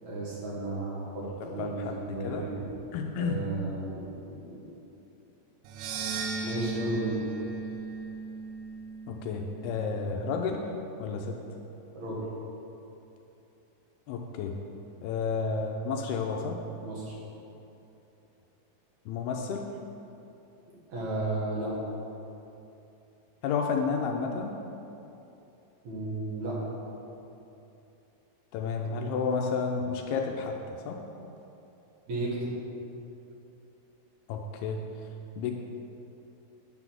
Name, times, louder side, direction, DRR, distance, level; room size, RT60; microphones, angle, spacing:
voice 1, 0.0-1.8 2.0-2.6 3.2-4.6 6.4-7.2 11.9-12.2 16.8-17.1 20.9-21.7 25.8-26.6 32.1-32.5, right 2 dB, 50° right, -6 dB, 2.7 m, -33 dB
voice 2, 1.6-1.9 2.2-2.5 2.9-3.4 9.1-10.6 11.0-11.4 14.1-14.6 15.0-16.6 19.1-19.7 23.4-24.5 28.5-30.6 30.9-31.0 34.3-34.9 35.4-35.6, left 5 dB, 85° left, 2 dB, 2.4 m, -31 dB
sound 1, 5.6-10.0, right 4 dB, 85° right, 2.8 m, -36 dB
9.6 x 4.1 x 7.4 m, 2.9 s
omnidirectional pair, 4.7 m